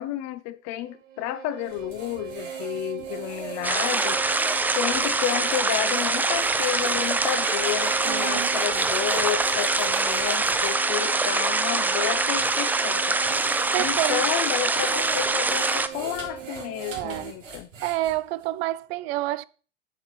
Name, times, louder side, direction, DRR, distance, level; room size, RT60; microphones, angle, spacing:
voice 1, 0.0-4.2 4.7-13.2 13.8-17.7, left 13 dB, 45° left, 0.8 m, -31 dB
Bowed string instrument, 0.8-17.4, right 9 dB, 70° right, 1.4 m, -39 dB
sound 1, 1.6-10.8 11.4-11.5 12.2-18.4, right 3 dB, 85° right, 3.4 m, -41 dB
sound 2, 3.6-15.9, right 3 dB, 5° right, 0.3 m, -24 dB
voice 2, 8.0-8.6 13.7-14.2 16.9-17.3 17.8-19.5, right 16 dB, 55° right, 0.5 m, -28 dB
7.6 x 7.5 x 3.4 m
hypercardioid pair, 90°, 38 cm